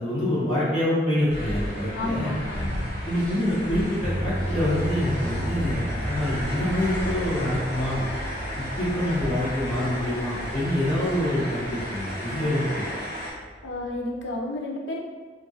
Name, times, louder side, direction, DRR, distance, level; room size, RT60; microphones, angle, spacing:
voice 1, 0.0-2.3 3.0-8.0 8.6-12.8, left 1 dB, 30° left, -10 dB, 0.9 m, -26 dB
sound 1, 1.3-13.3, equal, 55° left, 1.3 m, -34 dB
voice 2, 1.9-2.8 13.6-15.0, left 2 dB, 80° left, -1 dB, 0.5 m, -31 dB
sound 2, 4.0-14.1, equal, 15° right, 0.7 m, -36 dB
sound 3, 4.1-12.5, right 1 dB, 60° right, 0.7 m, -37 dB
2.9 x 2.5 x 2.7 m, 1.5 s
head